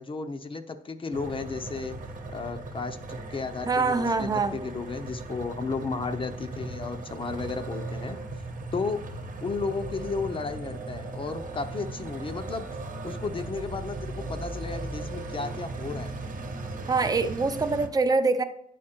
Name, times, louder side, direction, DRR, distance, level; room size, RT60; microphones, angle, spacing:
voice 1, 0.0-2.0 2.3-8.2 8.7-9.0 9.4-12.7 13.0-16.1, left 4 dB, 35° left, 9 dB, 0.6 m, -33 dB
sound 1, 1.1-17.9, right 2 dB, 55° right, 1.0 m, -37 dB
voice 2, 3.7-4.6 16.9-18.4, right 4 dB, 25° right, 9 dB, 0.5 m, -24 dB
9.6 x 4.9 x 4.3 m, 0.75 s
wide cardioid pair, 115°, 16 cm